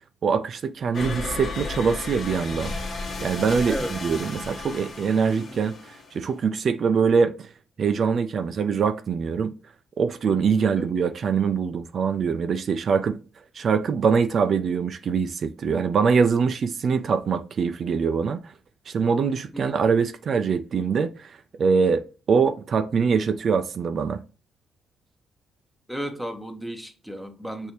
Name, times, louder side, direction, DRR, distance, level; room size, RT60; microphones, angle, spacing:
voice 1, 0.2-2.7 3.2-7.5 7.8-9.5 10.0-13.2 13.5-18.5 18.9-22.0 22.3-24.2, right 5 dB, 55° right, 0.4 m, -23 dB
sound 1, 0.9-6.5, left 3 dB, 60° left, 1.2 m, -34 dB
voice 2, 25.9-27.7, equal, ahead, 0.8 m, -34 dB
6.4 x 2.7 x 2.9 m
cardioid pair, 90°, 0 cm